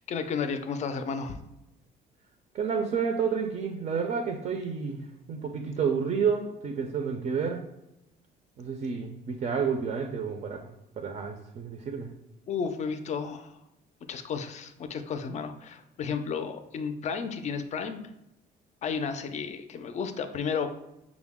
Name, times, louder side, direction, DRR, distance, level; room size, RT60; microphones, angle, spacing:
voice 1, 0.0-1.4 12.5-13.6 14.1-18.0 18.8-20.7, left 6 dB, 40° left, 9 dB, 0.4 m, -32 dB
voice 2, 2.5-5.0 5.3-7.6 8.6-10.7 11.0-12.1, right 6 dB, 45° right, 4 dB, 0.5 m, -30 dB
5.9 x 2.0 x 3.5 m, 0.89 s
cardioid pair, 120°, 18 cm